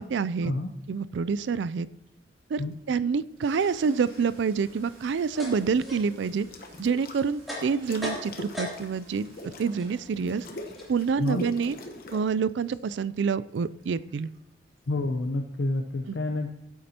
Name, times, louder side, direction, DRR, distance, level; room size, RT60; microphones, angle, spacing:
voice 1, 0.0-0.5 0.9-1.9 2.5-6.5 6.8-9.3 9.6-10.5 10.9-11.8 12.1-14.3 16.1-16.2, right 5 dB, 70° right, 17 dB, 0.3 m, -27 dB
Toilet flush, 2.1-2.2 2.8-15.3, right 1 dB, 50° right, 2.9 m, -54 dB
sound 1, 3.6-4.3 6.2-7.2 7.6-12.2, left 1 dB, 50° left, 1.0 m, -43 dB
sound 2, 4.8-9.1 9.4-12.3, left 1 dB, ahead, 2.9 m, -40 dB
voice 2, 14.9-16.5, left 2 dB, 85° left, 3 dB, 0.7 m, -28 dB
15.5 x 8.5 x 2.9 m, 0.89 s
head